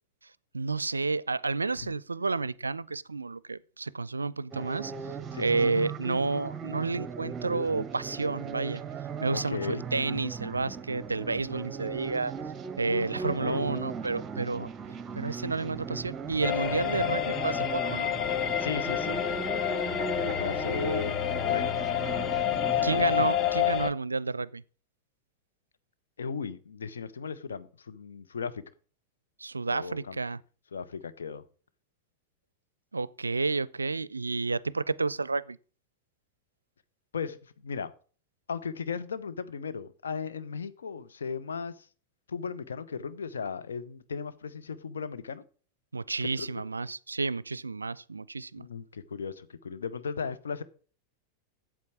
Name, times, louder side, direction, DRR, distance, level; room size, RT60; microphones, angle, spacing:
voice 1, 0.5-4.9 5.4-8.8 9.2-12.3 12.8-14.7 15.1-18.1 22.8-24.6 29.4-30.4 32.9-35.6 45.9-48.7, right 3 dB, 80° right, 0.4 m, -30 dB
sound 1, 4.5-23.3, right 5 dB, 25° right, 0.9 m, -38 dB
voice 2, 5.3-5.8 9.3-9.8 13.0-13.7 18.6-19.2 20.2-21.2 21.5-21.7 22.6-23.0 26.2-28.6 29.7-30.2 30.7-31.4 37.1-37.4 37.6-37.9 38.5-41.7 42.3-45.4 46.4-46.6 48.6-50.6, left 5 dB, 70° left, 0.9 m, -36 dB
sound 2, 16.4-23.9, left 11 dB, 35° left, 0.9 m, -29 dB
8.5 x 7.7 x 7.4 m
figure-of-eight pair, 90°, 0 cm